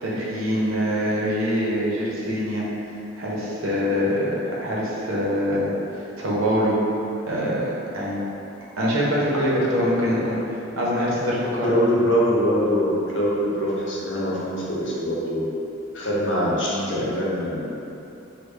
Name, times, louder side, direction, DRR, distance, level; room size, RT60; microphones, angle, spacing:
voice 1, 0.0-2.7 3.2-5.7 6.2-6.8 7.3-8.2 8.8-10.4 10.8-11.7, equal, 90° right, -6 dB, 0.7 m, -24 dB
voice 2, 11.6-15.5 15.9-17.6, equal, 65° left, -7 dB, 0.7 m, -23 dB
3.4 x 2.2 x 3.2 m, 2.9 s
head